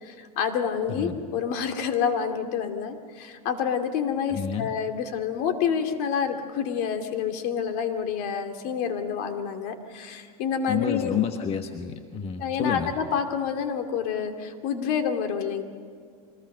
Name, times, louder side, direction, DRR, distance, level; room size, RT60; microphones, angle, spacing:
voice 1, 0.0-11.2 12.4-15.6, left 7 dB, 60° left, 6 dB, 2.5 m, -28 dB
voice 2, 4.3-4.7 10.7-12.9, left 8 dB, 30° left, 6 dB, 1.3 m, -29 dB
24.5 x 20.0 x 6.7 m, 2.1 s
supercardioid pair, 115°, 19 cm